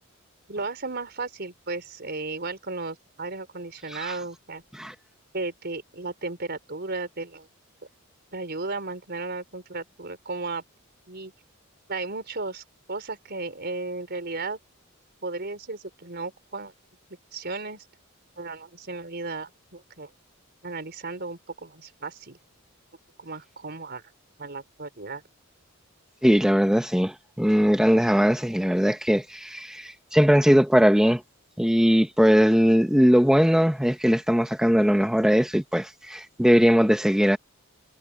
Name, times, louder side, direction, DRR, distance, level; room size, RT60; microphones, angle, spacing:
voice 1, 0.5-4.6 5.3-7.5 8.3-10.6 11.1-11.3 11.9-14.6 15.2-16.7 17.3-17.9 18.4-20.1 20.6-22.4 23.2-24.0 24.4-25.2, right 3 dB, 50° right, 4.2 m, -34 dB
voice 2, 26.2-31.2 31.6-37.4, equal, 5° right, 0.9 m, -20 dB
head